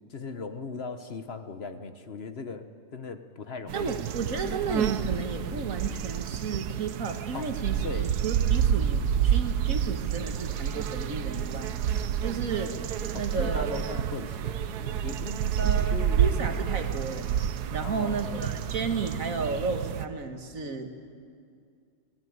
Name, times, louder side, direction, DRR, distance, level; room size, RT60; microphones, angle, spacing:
voice 1, 0.1-2.7 2.9-3.9 7.3-7.5 7.8-8.1 13.1-16.2 17.8-18.6, left 4 dB, 45° left, 9 dB, 1.2 m, -39 dB
voice 2, 3.7-11.7 12.2-12.8 13.1-13.8 15.6-20.9, right 4 dB, 60° right, 6 dB, 1.9 m, -33 dB
sound 1, 3.7-20.1, right 9 dB, 80° right, 1.3 m, -29 dB
25.5 x 18.0 x 9.4 m, 2.3 s
omnidirectional pair, 1.7 m